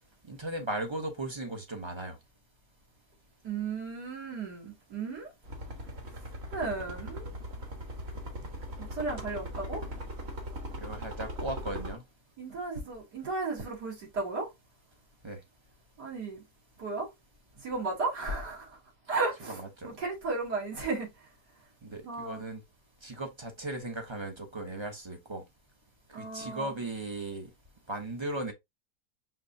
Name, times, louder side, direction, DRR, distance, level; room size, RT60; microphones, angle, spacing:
voice 1, 0.3-2.2 10.8-12.0 15.2-15.4 19.5-19.9 21.8-22.6 23.0-25.4 26.2-27.5 27.9-28.5, right 2 dB, 25° right, 0.7 m, -37 dB
voice 2, 3.4-5.3 6.5-7.3 8.8-9.8 12.4-14.5 16.0-16.4 16.8-17.1 17.6-18.8 19.1-19.6 19.8-21.1 22.0-22.4 26.1-26.7, right 3 dB, 80° right, 2.7 m, -34 dB
sound 1, 5.4-11.9, equal, 45° right, 1.4 m, -40 dB
5.7 x 3.1 x 2.7 m
omnidirectional pair, 1.7 m